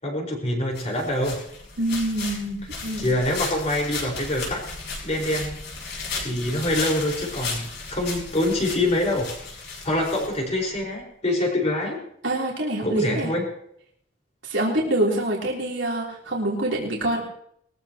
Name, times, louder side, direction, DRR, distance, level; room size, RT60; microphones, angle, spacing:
voice 1, 0.0-1.4 3.0-4.7 5.0-5.6 5.8-9.3 9.8-12.0 12.8-13.4, left 1 dB, 35° left, -1 dB, 5.0 m, -25 dB
sound 1, 0.7-10.7, left 3 dB, 65° left, 6.7 m, -35 dB
voice 2, 1.8-3.1 12.2-13.3 14.4-17.3, right 1 dB, 75° right, -3 dB, 3.6 m, -25 dB
22.0 x 14.5 x 3.0 m, 0.70 s
head